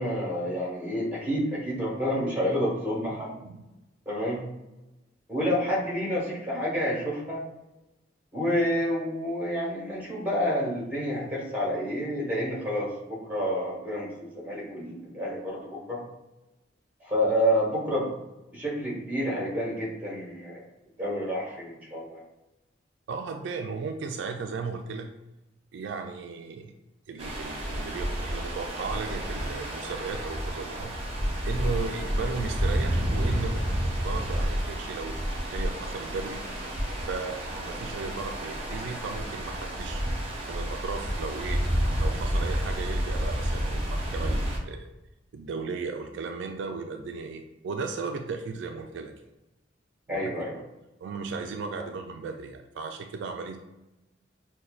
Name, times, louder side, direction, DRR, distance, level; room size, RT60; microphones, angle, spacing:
voice 1, 0.0-3.3 4.0-4.4 5.3-7.4 8.3-16.0 17.0-18.1 18.5-20.6 21.0-22.2 50.1-50.6, equal, 10° right, -5 dB, 1.3 m, -29 dB
voice 2, 23.1-25.1 25.7-26.7 27.1-30.9 31.4-33.6 34.0-36.4 37.0-40.0 40.5-41.6 42.0-44.9 45.3-49.1 50.1-50.3 51.0-53.6, right 4 dB, 70° right, 4 dB, 0.3 m, -36 dB
sound 1, 27.2-44.6, equal, 30° right, 0.7 m, -30 dB
5.4 x 2.2 x 2.4 m, 0.97 s
head